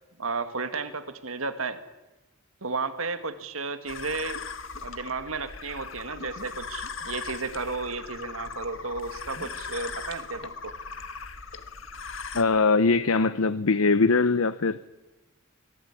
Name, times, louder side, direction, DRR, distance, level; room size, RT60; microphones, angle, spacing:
voice 1, 0.2-1.8 2.6-4.4 4.8-10.7, right 4 dB, 75° right, 10 dB, 2.0 m, -33 dB
sound 1, 3.9-12.4, left 5 dB, 60° left, 1.7 m, -39 dB
voice 2, 12.3-14.8, left 4 dB, 80° left, 14 dB, 0.8 m, -22 dB
25.0 x 19.0 x 9.9 m, 1.0 s
head